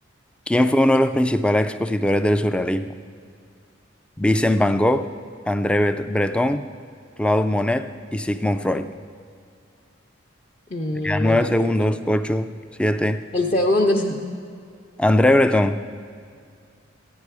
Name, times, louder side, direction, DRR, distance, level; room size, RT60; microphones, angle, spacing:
voice 1, 0.5-2.9 4.2-5.1 5.5-6.7 7.2-8.9 11.0-13.2 15.0-15.8, left 1 dB, 5° left, 11 dB, 0.3 m, -20 dB
voice 2, 10.7-11.9 13.3-14.2, left 1 dB, 40° left, -3 dB, 0.7 m, -23 dB
14.0 x 9.8 x 4.7 m, 2.3 s
head